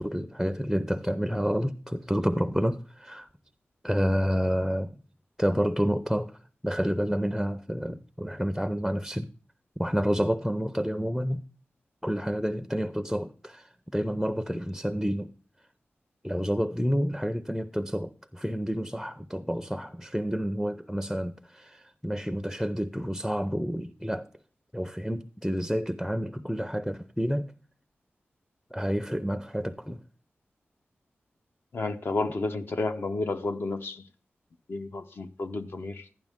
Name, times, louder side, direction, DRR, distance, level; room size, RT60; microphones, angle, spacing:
voice 1, 0.0-3.3 3.8-5.0 5.4-6.4 6.6-9.3 9.8-11.4 12.0-15.3 16.2-24.3 24.7-27.5 28.7-30.0, equal, ahead, 0.5 m, -29 dB
voice 2, 31.7-34.1 34.7-36.1, left 3 dB, 60° left, 0.9 m, -31 dB
11.5 x 10.5 x 3.5 m
wide cardioid pair, 90°, 4 cm